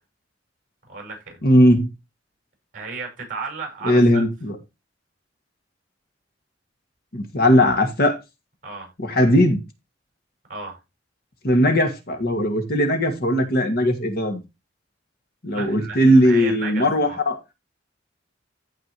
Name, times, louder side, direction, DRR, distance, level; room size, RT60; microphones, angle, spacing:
voice 1, 0.9-1.4 2.7-4.2 8.6-8.9 10.5-10.8 15.5-17.2, right 4 dB, 45° right, 5.9 m, -34 dB
voice 2, 1.4-1.9 3.8-4.6 7.1-8.2 9.0-9.6 11.4-14.4 15.4-17.4, equal, 55° left, 2.0 m, -18 dB
15.0 x 5.1 x 3.1 m
head